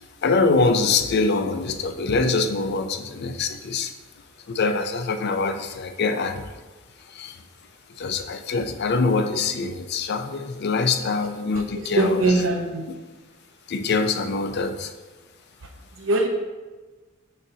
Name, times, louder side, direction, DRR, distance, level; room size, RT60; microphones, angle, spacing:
voice 1, 0.0-3.9 4.5-6.5 7.1-7.4 8.0-12.4 13.7-14.9, left 3 dB, 55° left, 8 dB, 0.4 m, -24 dB
voice 2, 12.0-12.8 16.0-16.3, right 2 dB, 70° right, 2 dB, 0.7 m, -21 dB
6.4 x 5.4 x 2.7 m, 1.3 s
head